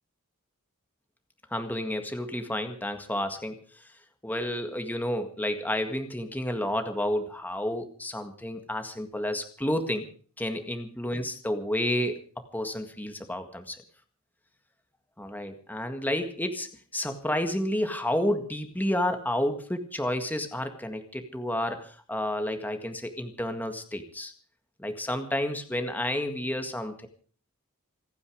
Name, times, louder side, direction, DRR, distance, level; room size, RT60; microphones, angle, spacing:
voice 1, 1.5-3.6 4.2-10.1 10.4-12.2 12.5-13.8 15.2-24.3 24.8-27.1, left 1 dB, 10° left, 6 dB, 1.8 m, -30 dB
27.5 x 9.6 x 5.0 m, 0.42 s
head